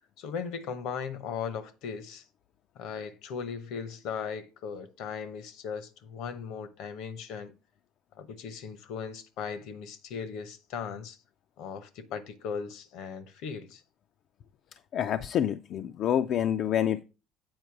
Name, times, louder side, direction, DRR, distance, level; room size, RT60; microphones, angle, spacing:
voice 1, 0.2-2.2 2.8-7.5 8.1-11.2 11.6-13.8, left 6 dB, 75° left, 0.9 m, -38 dB
voice 2, 14.9-17.0, left 10 dB, 55° left, 0.3 m, -27 dB
7.9 x 4.6 x 4.6 m
supercardioid pair, 95°, 0 cm